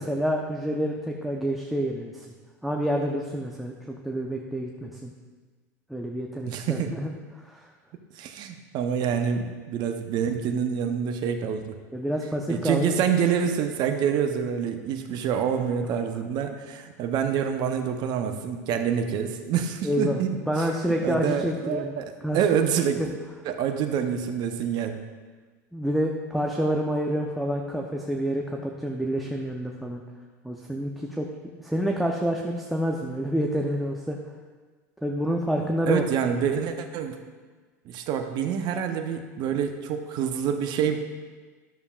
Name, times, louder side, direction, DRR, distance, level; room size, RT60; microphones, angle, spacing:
voice 1, 0.0-2.3 2.6-5.1 5.9-7.1 7.4-7.7 11.9-13.0 19.8-22.0 22.2-22.4 23.0-23.1 25.7-30.0 30.4-31.3 31.6-34.2 35.0-36.0, equal, ahead, 1 dB, 0.7 m, -28 dB
voice 2, 6.5-7.0 8.1-11.8 12.5-20.7 21.0-22.1 22.3-23.1 23.4-25.0 35.9-37.2 37.8-41.0, right 7 dB, 50° right, 6 dB, 0.8 m, -27 dB
12.0 x 7.0 x 2.4 m, 1.4 s
hypercardioid pair, 95°, 9 cm